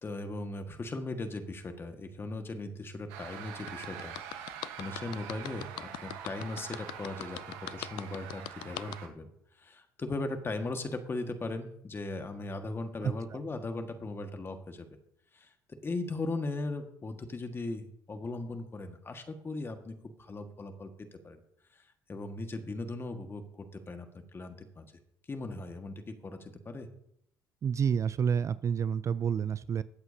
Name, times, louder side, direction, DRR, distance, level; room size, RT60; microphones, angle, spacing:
voice 1, 0.0-9.3 9.6-14.9 15.3-15.5 15.8-20.9 21.2-21.4 21.7-24.9 25.3-26.9, left 2 dB, 30° left, 6 dB, 1.7 m, -38 dB
sound 1, 3.1-9.1, right 8 dB, 80° right, 1.3 m, -45 dB
sound 2, 3.7-9.0, left 18 dB, 70° left, 0.4 m, -41 dB
voice 2, 13.0-13.4 27.6-29.8, right 7 dB, 40° right, 17 dB, 0.4 m, -29 dB
20.5 x 8.0 x 2.8 m, 0.73 s
hypercardioid pair, 70°, 8 cm